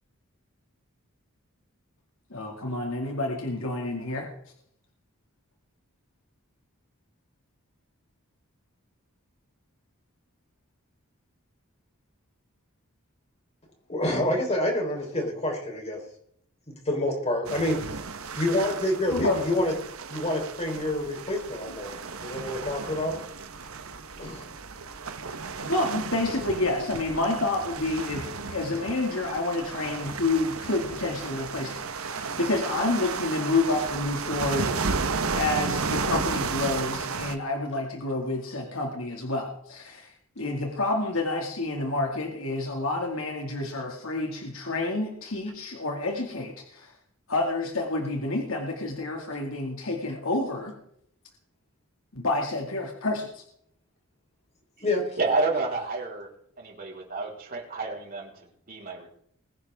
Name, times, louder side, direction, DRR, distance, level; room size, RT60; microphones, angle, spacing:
voice 1, 2.3-4.3 19.1-19.4 25.6-34.8 35.3-46.9 47.3-50.8 52.1-53.4, left 2 dB, 75° left, 1 dB, 2.2 m, -29 dB
voice 2, 13.9-16.0 16.7-17.8 18.4-19.7 20.1-21.9 22.2-23.1 24.2-24.5 54.8-55.0, left 1 dB, 30° left, 2 dB, 4.0 m, -27 dB
sound 1, 17.4-37.3, right 4 dB, 80° right, 1.2 m, -33 dB
voice 3, 55.2-56.3 56.6-59.1, right 3 dB, 45° right, -2 dB, 4.2 m, -30 dB
21.5 x 10.5 x 3.6 m, 0.68 s
head